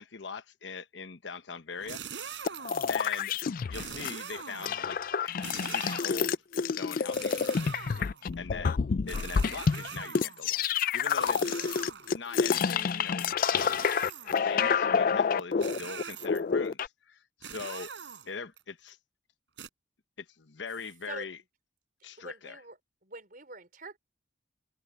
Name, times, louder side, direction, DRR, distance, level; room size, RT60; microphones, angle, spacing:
voice 1, 0.0-2.4 2.9-3.4 3.7-6.3 6.7-8.0 8.4-8.8 9.1-11.6 12.1-14.1 14.4-17.9 18.3-19.0 20.2-21.4 22.0-22.6, left 5 dB, 75° left, 1.0 m, -42 dB
sound 1, 1.7-3.1 3.7-4.9 5.4-6.3 7.1-8.3 9.1-10.5 11.2-12.3 13.6-14.5 15.6-16.5 17.4-18.6 19.6-19.7, right 7 dB, 80° right, 4.0 m, -43 dB
sound 2, 2.4-4.1 4.4-16.9, left 6 dB, 50° left, 0.4 m, -28 dB
voice 2, 22.2-22.8 23.0-24.0, right 2 dB, 50° right, 4.9 m, -44 dB
head